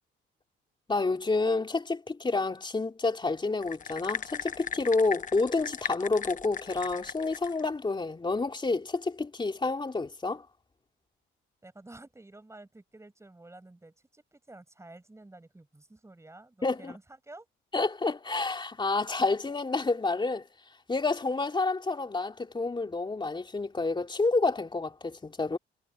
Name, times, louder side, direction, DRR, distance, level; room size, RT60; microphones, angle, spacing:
voice 1, 0.9-10.4 16.6-16.9 17.7-20.5 20.9-25.6, left 3 dB, 25° left, 3.1 m, -29 dB
sound 1, 3.6-7.6, left 6 dB, 40° left, 1.1 m, -37 dB
voice 2, 11.6-17.5, right 2 dB, 15° right, 7.7 m, -51 dB
cardioid pair, 90°, 20 cm